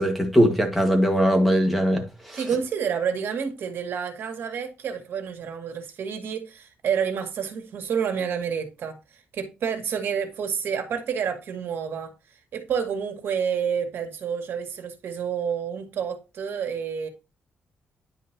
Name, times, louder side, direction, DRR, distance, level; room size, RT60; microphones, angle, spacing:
voice 1, 0.0-2.4, equal, ahead, 1.8 m, -21 dB
voice 2, 2.3-12.1 12.5-17.1, right 7 dB, 70° right, 2.1 m, -29 dB
10.5 x 5.3 x 2.9 m
cardioid pair, 120°, 4 cm